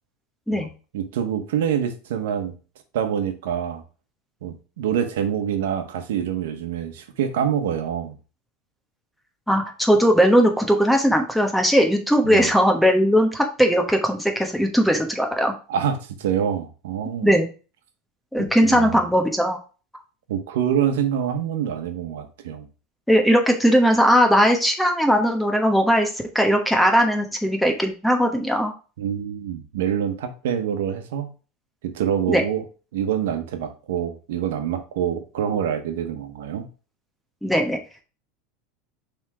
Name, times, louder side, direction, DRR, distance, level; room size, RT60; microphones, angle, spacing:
voice 1, 0.9-2.6 2.9-3.8 4.4-8.2 12.2-12.5 15.7-17.3 18.7-19.1 20.3-22.7 29.0-31.3 31.8-32.6 32.9-36.7, right 9 dB, 80° right, 1.1 m, -26 dB
voice 2, 9.5-15.5 17.2-17.5 18.3-19.6 23.1-26.1 26.3-28.7 32.3-32.4 37.4-37.8, equal, ahead, 1.2 m, -19 dB
6.0 x 3.6 x 4.7 m
supercardioid pair, 140°, 0 cm